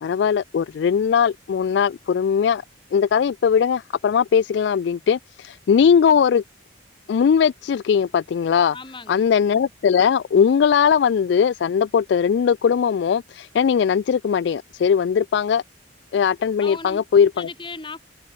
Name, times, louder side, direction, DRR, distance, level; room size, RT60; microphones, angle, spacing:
voice 1, 0.0-2.6 2.9-6.4 7.1-8.8 9.1-15.6 16.1-17.5, left 7 dB, 65° left, 0.3 m, -19 dB
voice 2, 8.7-9.3 16.6-18.0, left 3 dB, 25° left, 4.4 m, -37 dB
head